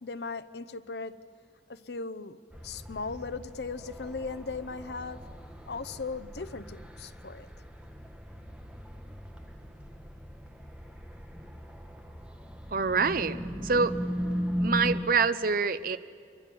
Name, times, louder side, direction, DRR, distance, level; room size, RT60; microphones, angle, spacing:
voice 1, 0.0-1.2 1.7-2.4 2.6-5.2 5.7-7.5, left 4 dB, 65° left, 12 dB, 0.8 m, -37 dB
sound 1, 2.5-15.0, equal, 5° right, 1.4 m, -38 dB
voice 2, 12.7-14.0 14.6-16.0, right 4 dB, 55° right, 13 dB, 0.8 m, -26 dB
25.5 x 23.0 x 7.0 m, 2.3 s
head